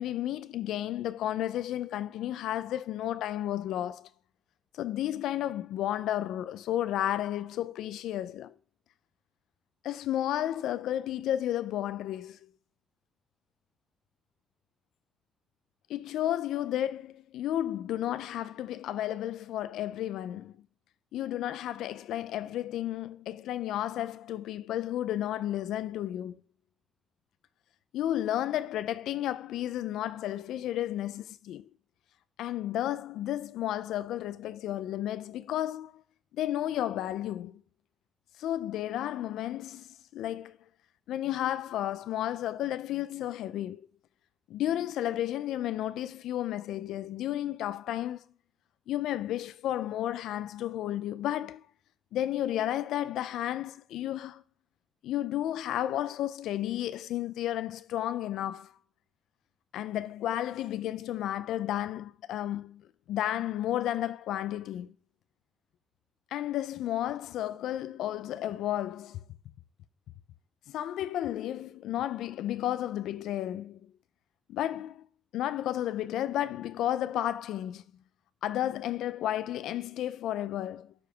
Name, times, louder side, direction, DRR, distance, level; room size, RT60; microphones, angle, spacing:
voice 1, 0.0-4.1 4.7-8.5 9.8-12.4 15.9-20.5 21.1-26.4 27.9-31.7 32.4-35.9 36.4-37.6 38.4-40.6 41.1-43.8 44.5-48.2 48.9-51.6 52.1-54.4 55.0-58.7 59.7-62.8 63.1-64.9 66.3-69.2 70.7-73.9 74.5-75.0 75.3-77.8 78.4-80.9, left 12 dB, 85° left, 0.4 m, -32 dB
9.4 x 4.9 x 3.3 m
cardioid pair, 90°, 0 cm